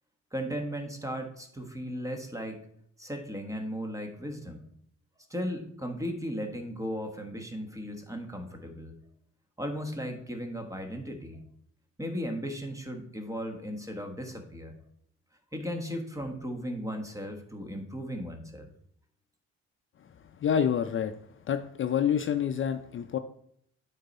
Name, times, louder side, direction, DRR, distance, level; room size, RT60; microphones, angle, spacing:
voice 1, 0.3-2.6 3.0-4.6 5.3-8.9 9.6-11.4 12.0-14.8 15.5-18.7, equal, 10° right, 5 dB, 1.4 m, -36 dB
voice 2, 20.4-21.1 21.5-23.2, left 8 dB, 45° left, 8 dB, 0.5 m, -27 dB
9.0 x 4.0 x 4.1 m, 0.69 s
cardioid pair, 90°, 30 cm